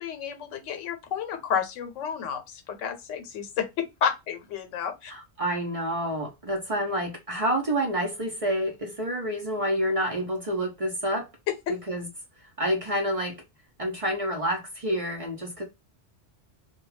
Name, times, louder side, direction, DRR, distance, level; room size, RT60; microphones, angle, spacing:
voice 1, 0.0-5.1 11.5-11.6, left 8 dB, 80° left, 1.0 m, -31 dB
voice 2, 5.1-11.3 11.7-12.1 12.4-13.4 13.8-15.6, equal, 40° right, 0.6 m, -28 dB
2.3 x 2.2 x 3.1 m
omnidirectional pair, 1.3 m